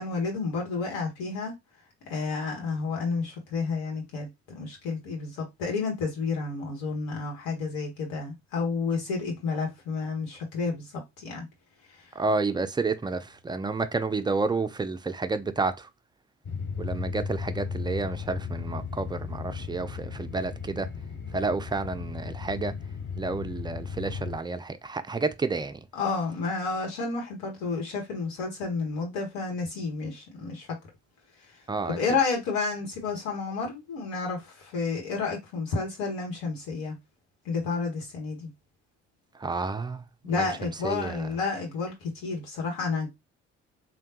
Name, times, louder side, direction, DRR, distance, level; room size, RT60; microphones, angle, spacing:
voice 1, 0.0-1.5 2.1-11.5 25.9-30.7 31.8-37.0 37.4-38.5 40.2-43.1, left 4 dB, 70° left, 1.4 m, -31 dB
voice 2, 12.2-15.9 16.8-20.9 21.3-22.7 23.2-25.8 31.7-32.0 39.4-41.3, right 3 dB, 15° right, 0.3 m, -30 dB
sound 1, 16.4-24.4, left 5 dB, 30° left, 0.7 m, -35 dB
3.3 x 2.3 x 2.8 m
hypercardioid pair, 50°, 37 cm